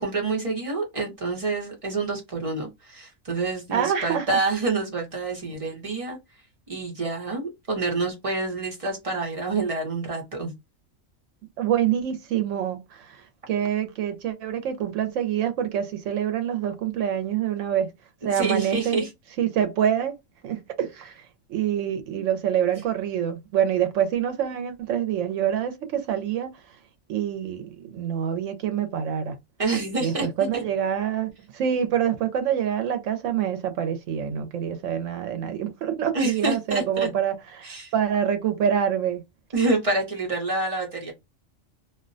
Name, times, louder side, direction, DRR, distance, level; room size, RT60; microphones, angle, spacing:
voice 1, 0.0-6.2 6.7-10.5 18.3-19.1 29.6-30.3 30.5-30.6 36.1-37.1 37.6-37.9 39.5-41.1, right 3 dB, 30° right, 0.7 m, -27 dB
voice 2, 3.7-4.4 11.6-13.1 13.5-17.9 18.2-19.1 19.4-20.2 20.4-21.1 21.5-26.6 27.1-29.4 30.0-37.7 37.9-39.2, right 9 dB, 75° right, 0.9 m, -26 dB
2.4 x 2.1 x 2.5 m
omnidirectional pair, 1.4 m